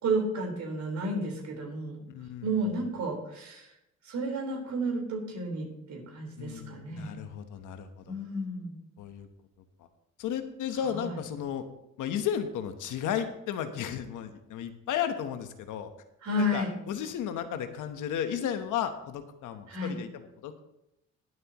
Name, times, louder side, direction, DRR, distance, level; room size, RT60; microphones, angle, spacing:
voice 1, 0.0-2.0 2.4-3.7 4.0-7.2 8.1-8.8 10.9-11.2 16.2-16.7 19.7-20.0, right 1 dB, 65° right, 0 dB, 4.3 m, -32 dB
voice 2, 2.1-2.7 6.4-8.1 9.0-9.3 9.8-9.9 10.2-11.6 12.0-15.9 16.4-20.7, left 9 dB, 85° left, 8 dB, 1.1 m, -34 dB
20.0 x 7.8 x 3.0 m, 0.85 s
cardioid pair, 90°, 30 cm